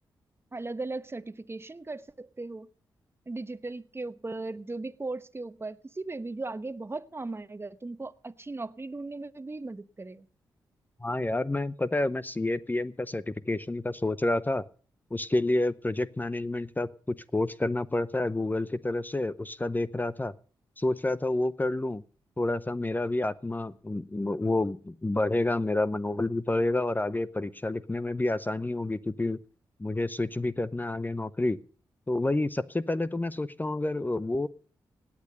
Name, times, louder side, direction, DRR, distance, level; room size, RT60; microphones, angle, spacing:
voice 1, 0.5-2.7 3.3-10.3, right 3 dB, 25° right, 1.1 m, -37 dB
voice 2, 11.0-14.6 15.1-20.3 20.8-22.0 22.4-29.4 29.8-31.6 32.1-34.5, left 2 dB, 20° left, 0.8 m, -29 dB
17.5 x 8.7 x 6.7 m
supercardioid pair, 40°, 9 cm